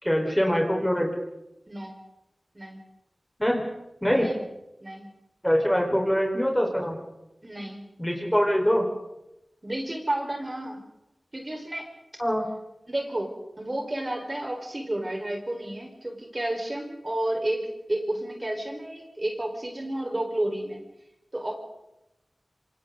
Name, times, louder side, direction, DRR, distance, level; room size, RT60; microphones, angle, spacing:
voice 1, 0.0-1.1 3.4-3.6 4.0-4.3 5.4-7.0 8.0-8.9 12.2-12.4, equal, 10° left, 0 dB, 4.6 m, -23 dB
voice 2, 7.4-7.8 9.6-10.8 11.3-11.9 12.9-20.8 21.3-21.6, right 1 dB, 35° right, 1 dB, 4.7 m, -31 dB
26.5 x 26.0 x 4.0 m, 0.90 s
wide cardioid pair, 50°, 0 cm